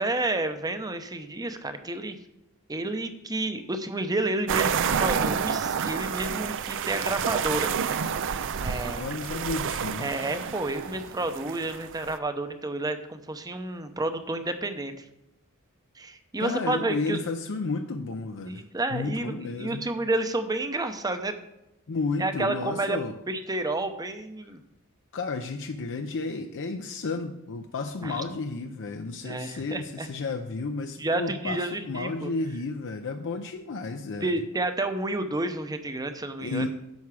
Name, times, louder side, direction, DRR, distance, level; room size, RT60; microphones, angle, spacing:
voice 1, 0.0-2.2 2.7-7.7 8.6-9.1 10.0-14.9 16.0-17.2 18.5-21.4 22.2-23.0 23.3-24.6 28.0-28.2 29.2-30.1 31.0-32.3 34.2-36.7, right 2 dB, 20° right, 9 dB, 0.7 m, -30 dB
sound 1, 4.5-12.2, right 7 dB, 60° right, 0.5 m, -29 dB
voice 2, 9.0-10.1 16.4-18.6 18.9-19.9 21.9-23.1 25.1-34.3 36.4-36.8, left 3 dB, 60° left, 5 dB, 0.6 m, -32 dB
10.5 x 7.0 x 4.8 m, 0.89 s
head